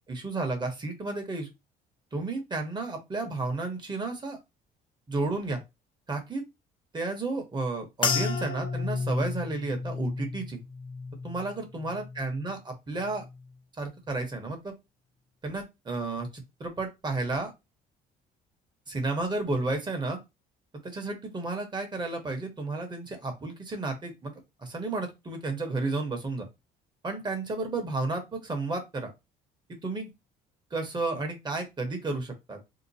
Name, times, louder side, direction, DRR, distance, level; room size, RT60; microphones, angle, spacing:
voice 1, 0.1-1.5 2.1-4.4 5.1-5.6 6.1-6.4 6.9-10.6 11.2-13.2 13.8-14.7 15.4-17.5 18.9-20.2 20.8-24.3 24.6-26.5 27.0-29.1 29.7-30.1 30.7-32.6, right 3 dB, 25° right, 4 dB, 1.2 m, -32 dB
sound 1, 8.0-12.6 12.9-13.5 14.1-14.4, left 4 dB, 30° left, 0.5 m, -33 dB
2.9 x 2.1 x 4.1 m, 0.22 s
cardioid pair, 110°, 17 cm